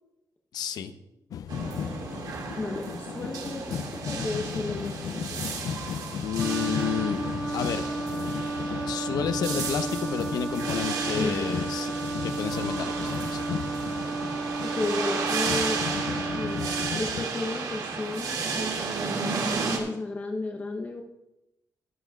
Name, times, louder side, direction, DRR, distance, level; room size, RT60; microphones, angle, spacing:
voice 1, 0.5-0.9 6.2-7.2 7.5-7.9 8.9-11.9 12.2-13.4, left 8 dB, 85° left, 9 dB, 0.8 m, -31 dB
sound 1, 1.3-17.2, left 8 dB, 65° left, 0.4 m, -36 dB
sound 2, 1.5-19.8, right 4 dB, 80° right, 2.2 m, -33 dB
voice 2, 2.5-5.5 11.2-11.6 14.6-15.8 16.3-18.8 19.7-21.0, left 2 dB, 25° left, 2 dB, 0.9 m, -33 dB
Wind instrument woodwind instrument, 6.4-17.0, right 3 dB, 15° right, 1.8 m, -33 dB
22.5 x 8.1 x 2.4 m, 0.92 s
wide cardioid pair, 155°, 7 cm